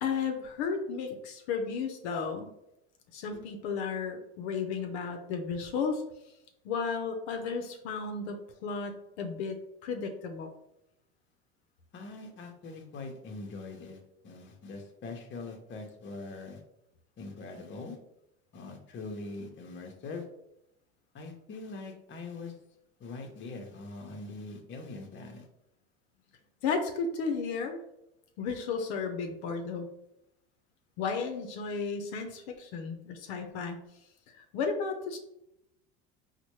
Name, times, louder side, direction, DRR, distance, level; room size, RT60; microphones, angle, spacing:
voice 1, 0.0-2.5 3.1-6.0 6.6-9.6 9.8-10.5 26.6-27.8 28.4-29.9 31.0-33.8 34.5-35.2, left 5 dB, 80° left, 4 dB, 0.6 m, -33 dB
voice 2, 11.9-14.0 14.2-16.6 17.2-18.0 18.5-20.2 21.1-22.5 23.0-25.5, left 3 dB, 35° left, 3 dB, 0.8 m, -42 dB
4.1 x 2.2 x 3.0 m, 0.83 s
supercardioid pair, 105°, 32 cm